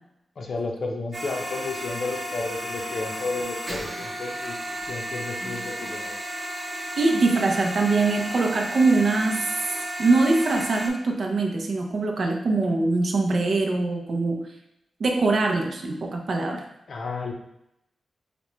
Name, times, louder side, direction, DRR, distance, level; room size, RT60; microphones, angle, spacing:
voice 1, 0.4-4.6 4.9-6.1 16.9-17.3, left 3 dB, 55° left, 2 dB, 0.6 m, -32 dB
sound 1, 1.1-10.9, equal, 20° right, 0.9 m, -33 dB
voice 2, 7.0-9.7 10.0-14.4 15.0-16.6, right 3 dB, 55° right, 2 dB, 0.6 m, -23 dB
5.0 x 2.2 x 3.0 m, 0.84 s
wide cardioid pair, 145°, 0 cm